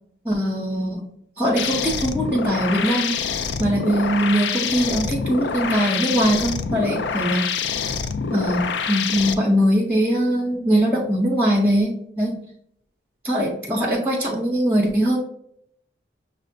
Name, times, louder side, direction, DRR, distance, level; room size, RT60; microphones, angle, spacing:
voice 1, 0.3-1.1 1.4-3.1 3.6-7.5 8.3-12.4 13.2-15.2, equal, 10° right, -2 dB, 0.4 m, -21 dB
sound 1, 1.6-9.3, left 6 dB, 80° left, 0.4 m, -26 dB
6.2 x 2.1 x 2.6 m, 0.70 s
head